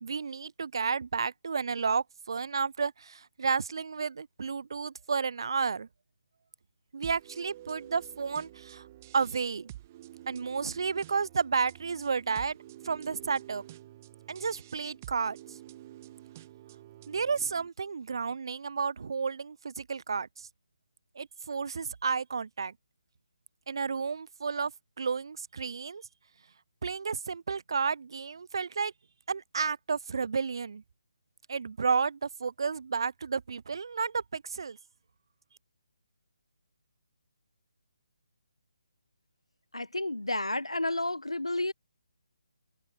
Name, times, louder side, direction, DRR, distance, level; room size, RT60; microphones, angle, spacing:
voice 1, 0.0-5.9 6.9-8.8 9.1-9.7 10.3-12.6 12.8-13.6 14.3-15.6 17.1-20.5 21.2-22.7 23.7-24.7 25.0-26.0 26.8-28.9 29.3-30.8 31.5-34.8, right 5 dB, 55° right, 0.5 m, -32 dB
sound 1, 7.0-17.7, right 14 dB, 25° right, 1.7 m, -49 dB
voice 2, 39.7-41.7, left 2 dB, 85° left, 0.5 m, -31 dB
figure-of-eight pair, 145°, 3 cm